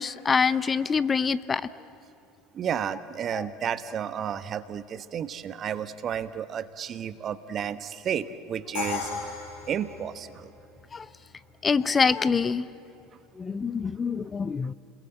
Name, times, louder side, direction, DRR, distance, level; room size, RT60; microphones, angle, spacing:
voice 1, 0.0-1.6 10.9-11.0 11.6-12.7 13.4-14.7, left 5 dB, 25° left, 16 dB, 0.7 m, -25 dB
voice 2, 2.5-9.2 9.7-10.5, right 8 dB, 40° right, 13 dB, 1.2 m, -32 dB
Crash cymbal, 8.7-10.7, left 6 dB, 70° left, 5.2 m, -35 dB
29.5 x 21.5 x 8.0 m, 2.7 s
hypercardioid pair, 70°, 0 cm